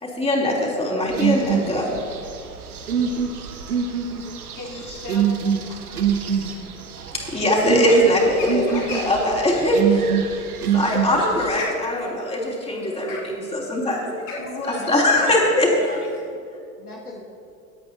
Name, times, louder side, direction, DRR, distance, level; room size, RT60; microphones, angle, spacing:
voice 1, 0.0-1.9 7.1-10.1 10.7-15.7, left 1 dB, 15° left, -4 dB, 3.4 m, -21 dB
sound 1, 1.1-11.5, right 7 dB, 85° right, 1.0 m, -25 dB
voice 2, 4.5-5.6 14.4-15.5 15.8-16.1, left 2 dB, 45° left, -1 dB, 2.6 m, -35 dB
sound 2, 7.8-9.2 10.6-16.2, left 3 dB, 60° left, 2.6 m, -37 dB
voice 3, 14.8-16.0 16.8-17.2, left 2 dB, 90° left, -1 dB, 1.5 m, -37 dB
25.0 x 8.7 x 2.8 m, 2.4 s
figure-of-eight pair, 75°, 43 cm